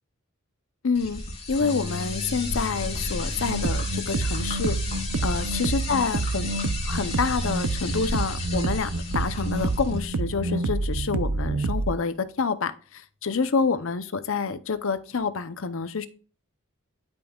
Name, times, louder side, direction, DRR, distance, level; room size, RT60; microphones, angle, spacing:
voice 1, 0.8-1.2 1.5-4.8 5.2-6.5 6.8-16.1, left 5 dB, 65° left, 13 dB, 0.7 m, -27 dB
sound 1, 0.9-10.1, left 2 dB, 30° left, 2.8 m, -33 dB
sound 2, 1.6-9.3, left 3 dB, 30° right, 1.3 m, -41 dB
sound 3, 3.4-11.9, right 3 dB, 75° right, 0.6 m, -28 dB
12.0 x 5.3 x 2.3 m, 0.39 s
head